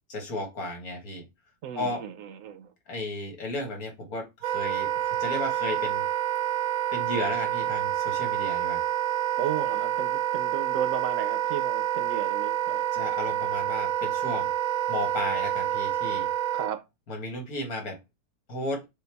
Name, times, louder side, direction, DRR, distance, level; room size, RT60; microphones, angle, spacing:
voice 1, 0.1-1.2 1.8-2.0 2.9-6.0 6.9-8.8 12.9-14.5 14.9-16.3 17.1-18.0 18.5-18.8, left 2 dB, 80° left, 2.0 m, -34 dB
voice 2, 1.6-2.7 9.3-12.9 16.5-16.8, right 9 dB, 70° right, 1.0 m, -34 dB
Wind instrument woodwind instrument, 4.4-16.7, right 12 dB, 85° right, 1.2 m, -28 dB
6.3 x 2.3 x 3.4 m
omnidirectional pair, 1.5 m